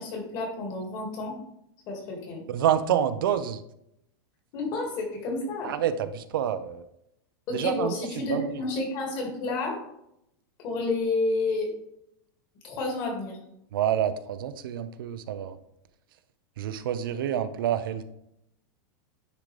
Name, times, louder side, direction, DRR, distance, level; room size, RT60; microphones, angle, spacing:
voice 1, 0.0-1.4 1.9-2.4 4.5-5.7 7.5-9.8 10.6-11.7 12.6-13.4, left 3 dB, 35° left, 0 dB, 2.0 m, -30 dB
voice 2, 2.5-3.6 5.6-6.9 7.5-8.6 13.7-15.6 16.6-18.0, right 10 dB, 75° right, 11 dB, 0.6 m, -28 dB
9.8 x 3.8 x 3.3 m, 0.79 s
supercardioid pair, 165°, 12 cm